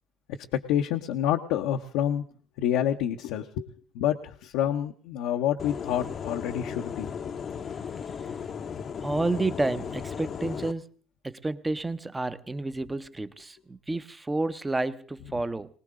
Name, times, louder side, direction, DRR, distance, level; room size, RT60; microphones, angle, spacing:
voice 1, 0.5-2.2 2.6-7.1, left 10 dB, 75° left, 0.8 m, -28 dB
sound 1, 5.6-10.7, left 7 dB, 40° left, 0.8 m, -36 dB
voice 2, 9.0-10.9 11.2-15.7, right 2 dB, 15° right, 0.9 m, -30 dB
20.5 x 18.5 x 3.7 m
supercardioid pair, 85°, 0 cm